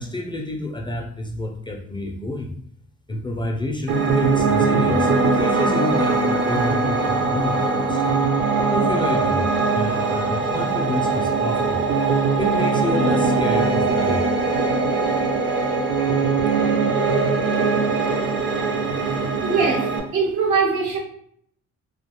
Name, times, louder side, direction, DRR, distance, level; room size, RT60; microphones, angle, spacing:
voice 1, 0.0-2.5 3.1-8.2 8.7-9.5 9.7-11.8 12.4-14.9, left 1 dB, 15° left, 1 dB, 0.3 m, -28 dB
Piano, 3.9-20.0, right 4 dB, 40° right, 0.5 m, -21 dB
voice 2, 19.4-21.0, right 4 dB, 75° right, -1 dB, 0.8 m, -22 dB
2.3 x 2.2 x 2.9 m, 0.66 s
cardioid pair, 90°, 30 cm